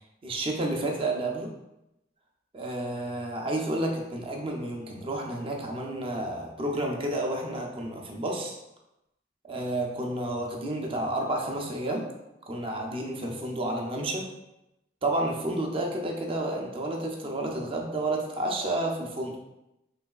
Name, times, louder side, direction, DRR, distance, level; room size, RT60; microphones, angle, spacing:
voice 1, 0.2-1.5 2.5-8.6 9.5-12.0 12.4-14.3 15.0-19.4, right 1 dB, 30° right, 0 dB, 0.5 m, -30 dB
3.3 x 3.0 x 2.3 m, 0.90 s
head